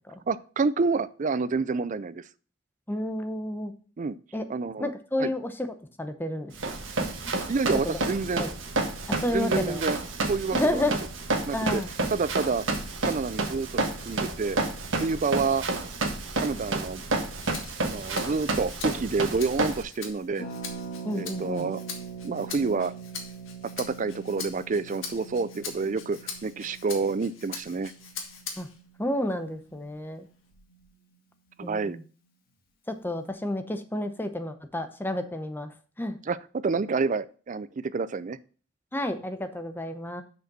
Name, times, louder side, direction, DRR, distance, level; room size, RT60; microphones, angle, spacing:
voice 1, 0.3-2.2 4.0-4.2 4.5-4.9 5.2-5.3 7.5-8.4 9.3-10.9 11.5-11.8 12.1-12.6 13.0-14.6 15.0-15.6 16.4-17.0 17.8-20.5 21.1-21.8 22.2-22.9 23.8-27.9 31.6-32.0 36.3-36.4 36.6-38.4, right 4 dB, 40° right, 15 dB, 0.4 m, -28 dB
voice 2, 2.9-3.7 4.3-4.4 4.8-5.5 6.0-6.8 7.2-7.4 7.8-7.9 8.4-8.5 9.1-9.8 10.5-10.9 11.5-11.9 21.0-21.7 28.6-28.7 29.0-30.3 31.6-32.0 32.9-35.7 36.0-36.2 38.9-40.2, left 1 dB, 10° left, 8 dB, 0.7 m, -30 dB
Run, 6.6-19.8, right 2 dB, 75° right, 1.3 m, -30 dB
Rattle (instrument), 17.4-28.8 29.3-30.5, left 6 dB, 90° left, 1.7 m, -42 dB
Harp, 20.4-30.0 30.3-30.4 30.5-30.8, right 5 dB, 50° left, 1.7 m, -43 dB
6.6 x 5.3 x 6.0 m, 0.41 s
head